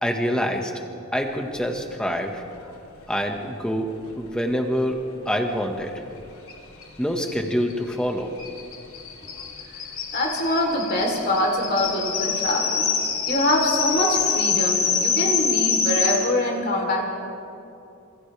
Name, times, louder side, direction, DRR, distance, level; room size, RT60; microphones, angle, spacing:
voice 1, 0.0-0.7 1.1-2.4 3.1-3.9 4.2-5.0 5.2-5.9 7.0-8.3, equal, 5° left, 2 dB, 1.7 m, -25 dB
sound 1, 6.5-6.6 6.8-6.9 7.2-16.2, left 6 dB, 70° left, 3.5 m, -25 dB
voice 2, 10.1-12.9 13.3-17.1, left 1 dB, 45° left, 0 dB, 3.8 m, -24 dB
28.0 x 27.5 x 3.5 m, 2.6 s
head